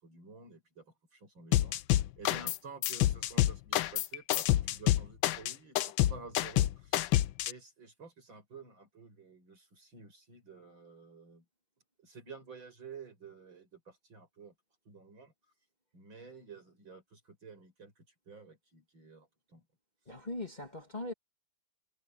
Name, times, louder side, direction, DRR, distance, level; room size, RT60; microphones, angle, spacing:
voice 1, 0.0-7.0 7.5-11.4 12.0-14.5 14.9-15.3 15.9-19.7, right 4 dB, 65° right, 7.7 m, -51 dB
sound 1, 1.5-2.6 2.8-7.5, left 14 dB, 75° left, 1.4 m, -27 dB
voice 2, 20.1-21.1, left 2 dB, 20° left, 1.9 m, -40 dB
omnidirectional pair, 2.3 m